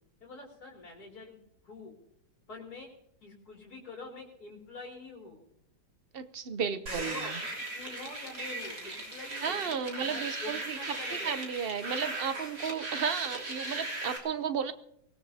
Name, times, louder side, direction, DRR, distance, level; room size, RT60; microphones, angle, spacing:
voice 1, 0.2-1.4 1.6-1.9 2.5-2.9 3.2-5.4 6.7-11.3 12.0-12.2, left 3 dB, 55° left, -1 dB, 3.5 m, -46 dB
voice 2, 6.1-7.2 9.4-10.8 11.1-14.7, right 7 dB, 80° right, 10 dB, 0.5 m, -33 dB
sound 1, 6.9-14.2, right 2 dB, 60° right, 3.9 m, -38 dB
24.0 x 18.5 x 2.8 m, 0.77 s
omnidirectional pair, 2.0 m